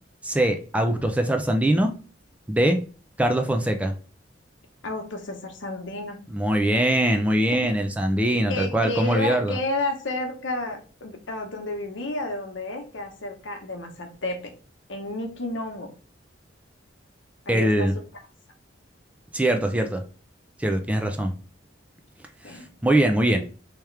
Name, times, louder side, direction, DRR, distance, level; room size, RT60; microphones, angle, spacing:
voice 1, 0.2-1.9 2.5-2.8 3.2-3.9 6.3-9.6 17.5-17.9 19.3-20.0 20.6-21.3 22.5-23.4, right 1 dB, 5° right, 5 dB, 0.4 m, -22 dB
voice 2, 4.8-6.2 8.5-14.5 14.9-15.9 17.5-17.9 22.4-22.7, left 2 dB, 80° left, 4 dB, 1.0 m, -31 dB
3.5 x 3.0 x 3.3 m, 0.38 s
head